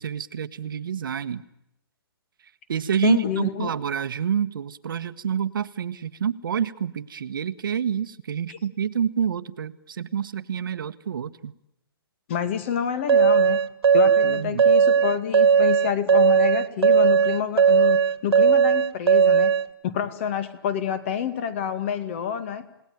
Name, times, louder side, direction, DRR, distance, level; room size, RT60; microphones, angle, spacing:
voice 1, 0.0-1.4 2.7-11.5 14.2-14.6, right 8 dB, 60° right, 12 dB, 1.3 m, -28 dB
voice 2, 3.0-3.7 8.5-8.6 12.3-13.6 13.9-19.5 19.8-22.6, left 8 dB, 30° left, 12 dB, 2.0 m, -28 dB
sound 1, 13.1-19.6, right 6 dB, 90° right, 2.0 m, -17 dB
29.0 x 19.0 x 9.3 m, 0.84 s
hypercardioid pair, 170°, 13 cm